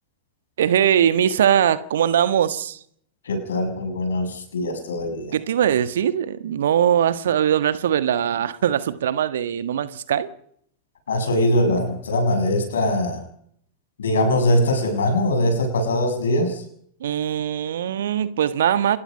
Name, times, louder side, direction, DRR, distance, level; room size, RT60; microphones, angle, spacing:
voice 1, 0.6-2.8 5.3-10.3 17.0-19.0, right 9 dB, 60° right, 1.4 m, -21 dB
voice 2, 3.2-5.4 11.1-13.2 14.0-16.6, left 1 dB, 65° left, 7.4 m, -22 dB
26.5 x 20.0 x 5.5 m
figure-of-eight pair, 90°, 0 cm